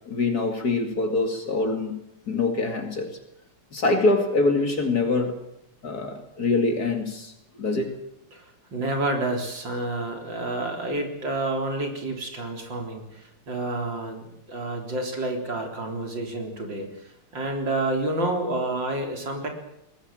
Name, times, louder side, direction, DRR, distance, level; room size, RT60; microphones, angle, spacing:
voice 1, 0.0-2.0 2.3-3.2 3.7-5.4 5.8-8.0, left 3 dB, 45° left, 2.8 m, -24 dB
voice 2, 8.3-19.5, right 2 dB, 55° right, 4.5 m, -29 dB
20.5 x 20.5 x 7.6 m
omnidirectional pair, 2.4 m